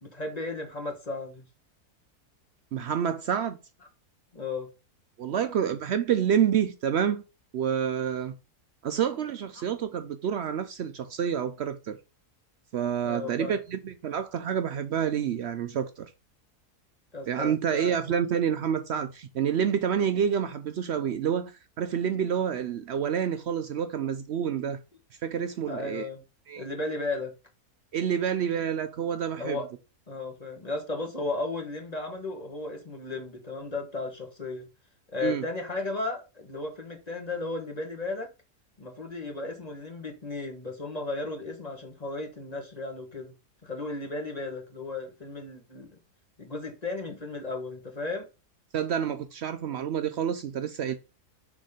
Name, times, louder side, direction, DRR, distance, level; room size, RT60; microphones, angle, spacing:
voice 1, 0.0-1.4 4.3-4.7 13.0-13.6 17.1-17.9 25.7-26.2 26.6-27.3 29.4-29.7 30.1-34.7 35.1-38.3 38.8-43.3 43.6-45.9 46.4-48.3, left 3 dB, 25° left, 1.2 m, -35 dB
voice 2, 2.7-3.6 5.2-7.2 7.5-8.3 8.8-12.0 12.7-16.1 17.3-24.8 25.2-26.1 26.5-26.7 27.9-29.6 35.2-35.5 48.7-50.9, right 8 dB, 75° right, 0.6 m, -28 dB
6.3 x 3.6 x 4.9 m
omnidirectional pair, 1.7 m